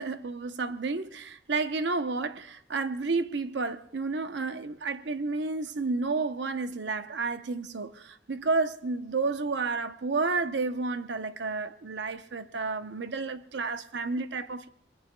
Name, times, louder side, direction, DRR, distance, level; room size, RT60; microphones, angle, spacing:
voice 1, 0.0-14.7, right 3 dB, 70° right, 0.7 m, -31 dB
29.5 x 21.0 x 2.2 m
head